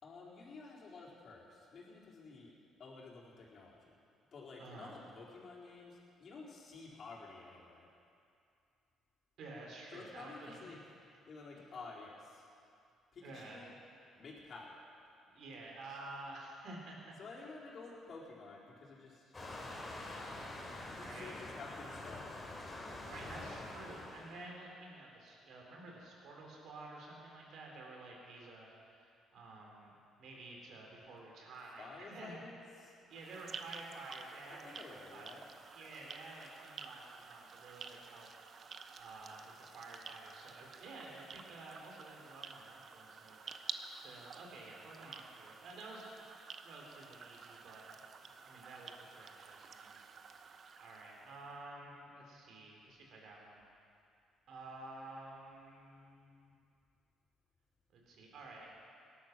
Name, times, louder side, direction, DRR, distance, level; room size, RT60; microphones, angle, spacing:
voice 1, 0.0-2.5 2.8-3.8 4.3-7.9 9.9-10.8 11.3-12.5 13.1-13.7 14.2-14.8 17.2-19.3 20.8-22.3 31.8-32.9 34.5-35.4, left 3 dB, 50° left, -4 dB, 4.1 m, -51 dB
voice 2, 4.6-5.0 9.4-10.6 13.2-13.7 15.3-17.1 20.9-21.4 23.0-29.9 30.2-32.4 33.1-38.3 39.0-43.5 44.0-46.1 46.6-50.4 50.8-53.6 54.5-56.5 57.9-58.7, right 2 dB, 65° right, -1 dB, 4.2 m, -51 dB
Waves surf, 19.3-24.4, left 2 dB, 25° left, 3.6 m, -46 dB
sound 1, 33.1-51.6, right 5 dB, 50° right, 0.9 m, -51 dB
18.0 x 11.5 x 6.1 m, 2.5 s
supercardioid pair, 75°, 0 cm